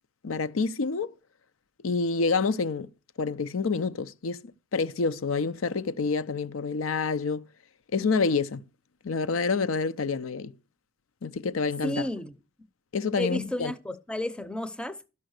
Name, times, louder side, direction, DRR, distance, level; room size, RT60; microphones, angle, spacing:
voice 1, 0.2-1.1 1.8-2.9 3.2-4.4 4.7-7.5 7.9-8.6 9.0-10.5 11.2-12.0 12.9-13.7, left 4 dB, 80° left, 0.6 m, -27 dB
voice 2, 11.8-12.3 13.2-15.1, left 1 dB, 5° left, 0.6 m, -32 dB
12.5 x 5.5 x 6.4 m
head